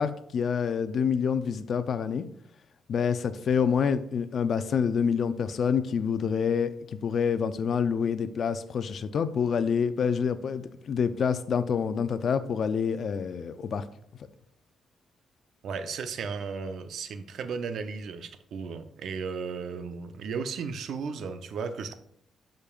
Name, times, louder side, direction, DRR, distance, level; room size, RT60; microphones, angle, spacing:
voice 1, 0.0-2.2 2.9-13.9, left 6 dB, 65° left, 12 dB, 0.5 m, -27 dB
voice 2, 15.6-22.0, right 5 dB, 75° right, 10 dB, 0.7 m, -35 dB
12.0 x 5.2 x 2.4 m, 0.69 s
cardioid pair, 70°, 0 cm